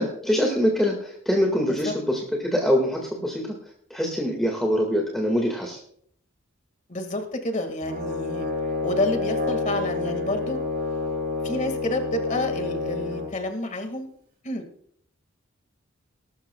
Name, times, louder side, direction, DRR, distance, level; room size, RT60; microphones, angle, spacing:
voice 1, 0.0-3.6 3.9-5.8, equal, ahead, -1 dB, 1.8 m, -24 dB
voice 2, 6.9-8.5 8.8-10.6 11.4-14.1 14.4-14.6, left 1 dB, 40° left, 6 dB, 1.9 m, -29 dB
Brass instrument, 7.8-13.3, left 3 dB, 50° right, 4.5 m, -28 dB
20.0 x 12.5 x 2.3 m, 0.65 s
head